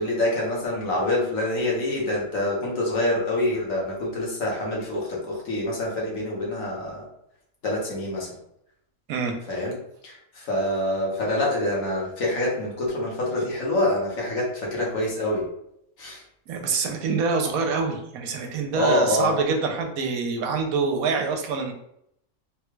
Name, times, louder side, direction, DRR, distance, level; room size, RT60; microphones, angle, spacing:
voice 1, 0.0-7.1 7.6-8.4 9.5-9.7 10.0-15.5 16.0-16.2 18.7-19.4, left 1 dB, 65° left, -3 dB, 1.4 m, -26 dB
voice 2, 9.1-9.4 16.5-21.7, right 4 dB, 80° right, 3 dB, 1.0 m, -25 dB
3.6 x 2.3 x 3.0 m, 0.76 s
omnidirectional pair, 1.5 m